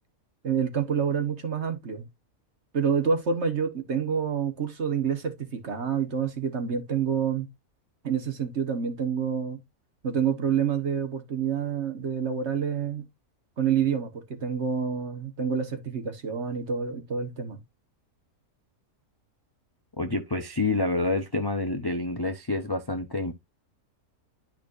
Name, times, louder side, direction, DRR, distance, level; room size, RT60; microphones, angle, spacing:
voice 1, 0.4-2.1 2.7-7.5 8.0-9.6 10.0-13.1 13.6-17.6, right 7 dB, 50° right, 1.5 m, -28 dB
voice 2, 20.0-23.3, left 2 dB, 25° left, 0.5 m, -28 dB
11.0 x 5.1 x 2.5 m
omnidirectional pair, 1.6 m